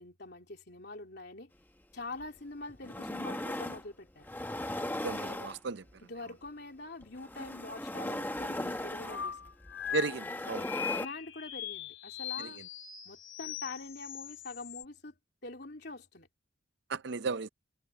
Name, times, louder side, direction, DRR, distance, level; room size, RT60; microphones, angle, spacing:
voice 1, 0.0-1.5 1.9-4.3 6.0-9.4 10.8-12.6 13.1-15.2 15.4-16.3, left 2 dB, 55° left, 3.4 m, -44 dB
sound 1, 2.2-2.3 2.7-3.8 4.2-5.9 7.0-11.1, left 1 dB, 10° left, 0.9 m, -38 dB
voice 2, 5.0-5.8 9.9-10.7 12.4-12.5 16.9-17.5, right 4 dB, 55° right, 0.5 m, -34 dB
sound 2, 9.0-14.8, left 9 dB, 85° left, 4.8 m, -40 dB
head